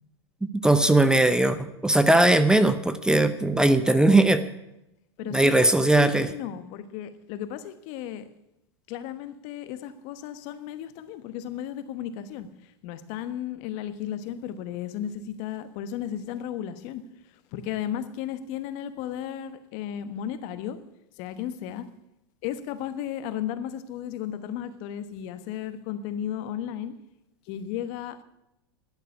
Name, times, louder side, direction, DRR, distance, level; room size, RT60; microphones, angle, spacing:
voice 1, 0.5-4.4 5.3-6.3, right 2 dB, 5° right, 12 dB, 0.7 m, -19 dB
voice 2, 5.2-5.7 6.0-8.3 8.9-12.5 12.8-17.0 17.5-20.8 21.2-21.9 22.4-27.0 27.5-28.2, left 10 dB, 55° left, 12 dB, 1.2 m, -34 dB
11.5 x 6.8 x 9.6 m, 0.85 s
hypercardioid pair, 110°, 14 cm